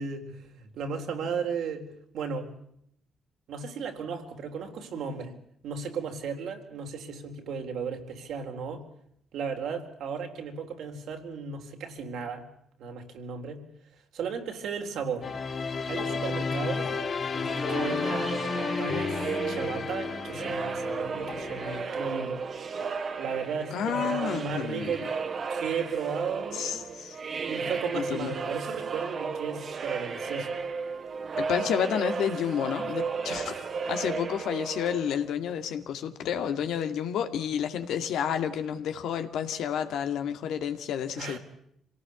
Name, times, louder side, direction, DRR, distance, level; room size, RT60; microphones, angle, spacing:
voice 1, 0.0-1.9 2.1-2.5 3.5-5.3 5.6-8.8 9.3-12.5 12.8-13.6 14.1-15.3 15.9-16.9 17.3-18.3 18.8-22.4 23.2-25.1 25.5-26.7 27.4-30.5 41.2-41.4, right 5 dB, 75° right, 4 dB, 3.8 m, -35 dB
sound 1, 15.2-21.8, left 5 dB, 45° left, 2.1 m, -32 dB
sound 2, 17.4-35.3, right 5 dB, 50° right, 2.1 m, -34 dB
voice 2, 23.7-25.0 26.5-27.2 27.9-28.3 31.4-41.4, left 8 dB, 80° left, 8 dB, 2.2 m, -30 dB
26.0 x 18.0 x 8.3 m, 0.71 s
cardioid pair, 90°, 0 cm